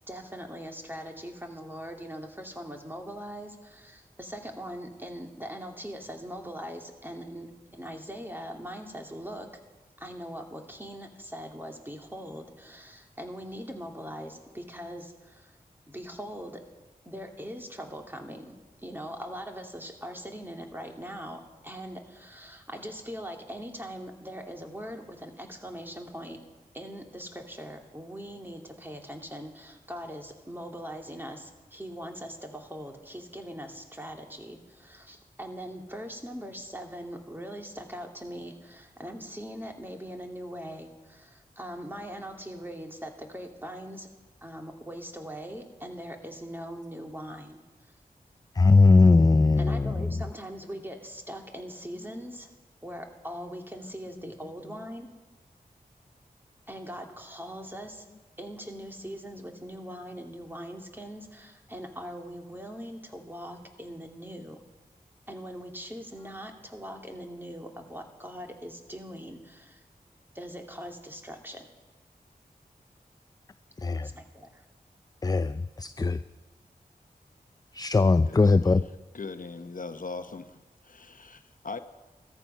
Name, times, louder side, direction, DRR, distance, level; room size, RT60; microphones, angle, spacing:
voice 1, 0.1-9.5 10.0-15.6 15.9-16.6 17.1-26.4 26.7-44.1 44.4-47.6 49.6-52.5 52.8-55.1 56.7-58.1 58.4-64.6 65.3-69.8 70.3-71.7 74.0-74.6, equal, 15° right, 2 dB, 2.3 m, -41 dB
voice 2, 48.6-50.2 73.8-74.1 75.2-76.2 77.7-78.8, left 3 dB, 25° left, 13 dB, 0.4 m, -20 dB
voice 3, 79.1-80.6 80.8-81.8, left 4 dB, 60° left, 9 dB, 0.9 m, -39 dB
15.0 x 14.0 x 5.6 m, 1.2 s
cardioid pair, 45°, 16 cm